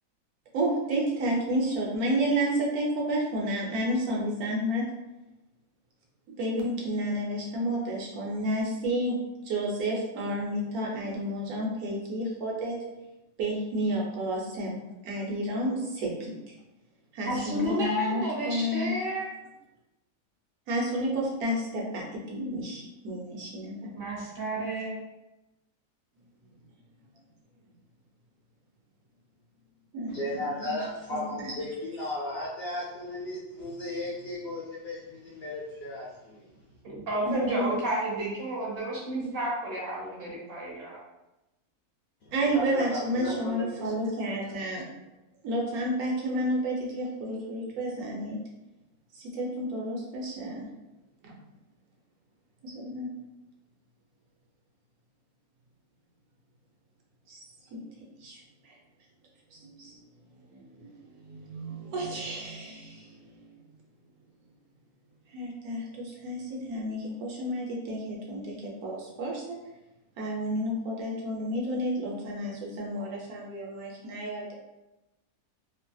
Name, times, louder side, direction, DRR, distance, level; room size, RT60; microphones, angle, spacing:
voice 1, 0.5-4.9 6.4-12.8 13.4-14.8 15.0-16.3 17.1-18.9 20.7-23.9 29.9-30.8 31.1-31.5 37.2-37.7 42.3-44.8 45.4-48.4 49.1-50.7 51.2-51.4 52.6-53.1 57.3-57.4 57.7-57.8 58.2-58.4 58.6-58.7 59.5-60.0 60.5-60.9 61.2-63.5 65.3-69.6 70.2-74.5, right 1 dB, 80° right, -2 dB, 1.2 m, -31 dB
voice 2, 17.2-19.3 24.0-25.0 36.8-41.0, right 1 dB, 45° right, -4 dB, 1.0 m, -31 dB
voice 3, 30.1-36.5 42.2-43.9, left 1 dB, 60° left, -5 dB, 0.7 m, -35 dB
2.8 x 2.6 x 2.3 m, 0.98 s
omnidirectional pair, 1.5 m